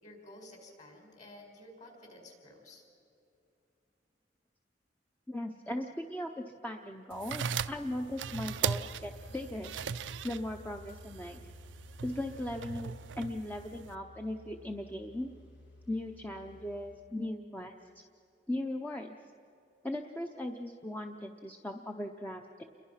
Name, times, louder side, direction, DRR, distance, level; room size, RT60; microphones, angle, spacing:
voice 1, 0.0-2.8, left 1 dB, 40° left, 2 dB, 5.2 m, -52 dB
voice 2, 5.3-9.7 10.2-11.4 12.0-15.3 15.9-18.0 18.5-19.2 19.8-22.6, left 1 dB, 10° left, 3 dB, 0.7 m, -38 dB
sound 1, 7.1-14.0, right 7 dB, 80° right, 0.5 m, -38 dB
sound 2, 8.1-17.0, equal, 80° left, 4.7 m, -54 dB
29.0 x 22.5 x 5.8 m, 2.7 s
head